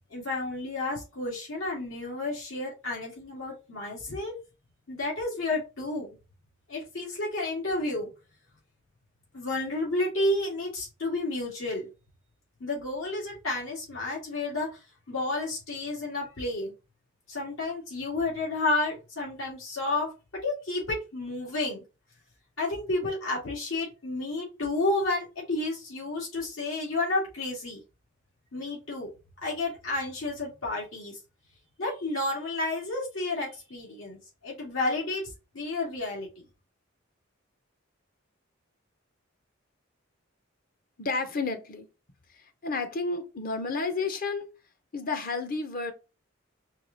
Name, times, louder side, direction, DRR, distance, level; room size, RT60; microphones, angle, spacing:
voice 1, 0.1-4.3 4.9-6.2 6.7-8.1 9.3-11.9 12.6-16.7 17.3-20.1 20.4-21.8 22.6-27.8 28.5-29.1 29.4-31.2 31.8-34.2 34.4-36.3, left 2 dB, 85° left, 2.1 m, -31 dB
voice 2, 41.0-41.9 42.3-44.5 44.9-45.9, left 3 dB, 45° left, 0.7 m, -31 dB
4.7 x 2.3 x 3.8 m
head